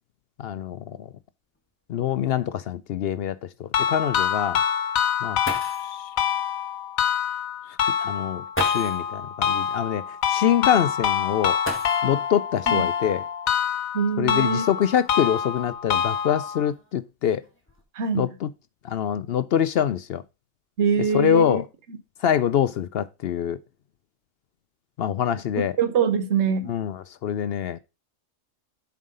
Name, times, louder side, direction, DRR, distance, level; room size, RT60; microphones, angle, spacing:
voice 1, 0.4-1.1 1.9-4.6 5.2-5.4 5.8-6.1 8.0-11.6 12.0-13.2 14.2-17.4 18.1-18.5 18.8-20.2 21.1-21.6 22.2-23.6 25.0-25.7 26.7-27.0 27.2-27.8, left 9 dB, 65° left, 0.6 m, -25 dB
sound 1, 1.5-1.6 2.0-2.1 2.8-2.9 5.1-5.2 5.4-6.0 7.3-7.4 8.5-9.1 11.6-12.3 13.7-13.8 14.5-16.0 16.7-17.1 17.4-17.8, equal, 10° left, 2.0 m, -35 dB
sound 2, 3.7-16.7, left 8 dB, 90° left, 1.2 m, -26 dB
voice 2, 13.9-14.6 17.9-18.3 20.8-21.6 25.8-26.7, right 6 dB, 60° right, 1.3 m, -23 dB
7.4 x 4.8 x 5.3 m
omnidirectional pair, 1.4 m